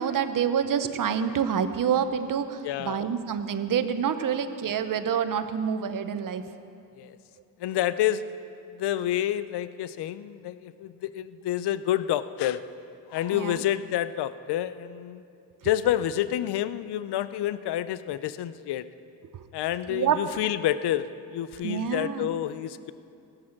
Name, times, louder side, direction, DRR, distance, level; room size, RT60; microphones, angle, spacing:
voice 1, 0.0-6.4 13.3-13.6 19.3-19.5 19.9-20.2 21.6-22.4, right 8 dB, 55° right, 10 dB, 0.9 m, -27 dB
voice 2, 2.6-3.1 7.0-7.2 7.6-8.2 8.7-12.6 13.1-15.2 15.6-18.8 19.5-21.1 21.3-22.9, left 12 dB, 80° left, 15 dB, 0.6 m, -28 dB
18.5 x 8.9 x 7.3 m, 2.5 s
cardioid pair, 125°, 39 cm